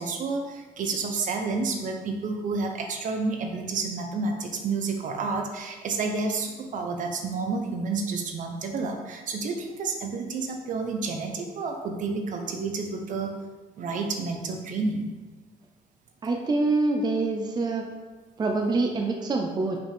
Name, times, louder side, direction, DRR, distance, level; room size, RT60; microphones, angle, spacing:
voice 1, 0.0-13.3 13.8-15.0, right 4 dB, 60° right, 3 dB, 0.9 m, -30 dB
voice 2, 16.2-17.9 18.4-19.8, right 3 dB, 30° right, 2 dB, 0.6 m, -25 dB
5.7 x 5.2 x 3.5 m, 1.3 s
cardioid pair, 120°, 15 cm